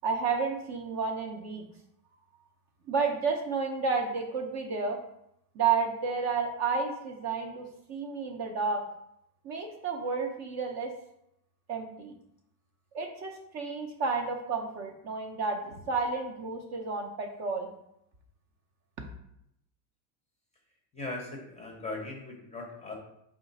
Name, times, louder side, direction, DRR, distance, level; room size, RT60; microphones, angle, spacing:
voice 1, 0.0-1.7 2.9-5.0 5.6-8.8 9.4-10.9 11.7-12.1 12.9-17.7, right 5 dB, 35° right, 2 dB, 0.5 m, -31 dB
voice 2, 20.9-22.9, left 2 dB, 15° left, 0 dB, 0.6 m, -39 dB
5.0 x 2.4 x 3.9 m, 0.79 s
cardioid pair, 150°, 47 cm